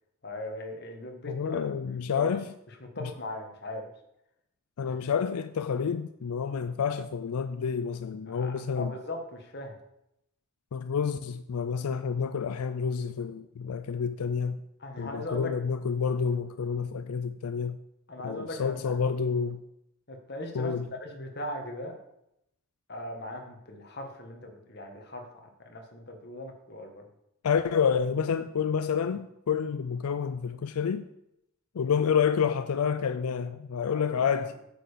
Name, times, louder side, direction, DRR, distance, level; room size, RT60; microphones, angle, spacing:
voice 1, 0.2-1.6 2.1-2.3 2.8-3.9 4.8-5.1 8.3-9.8 14.8-15.5 18.1-18.9 20.1-20.7 21.0-22.0 22.9-27.0 33.9-34.1 34.4-34.5, left 1 dB, 50° left, 1.5 m, -39 dB
voice 2, 1.3-2.5 3.0-3.1 4.8-8.9 10.7-14.6 15.0-17.8 18.2-19.6 20.5-20.9 27.4-31.1 31.7-34.6, left 6 dB, 90° left, 0.4 m, -29 dB
9.0 x 6.8 x 5.1 m
head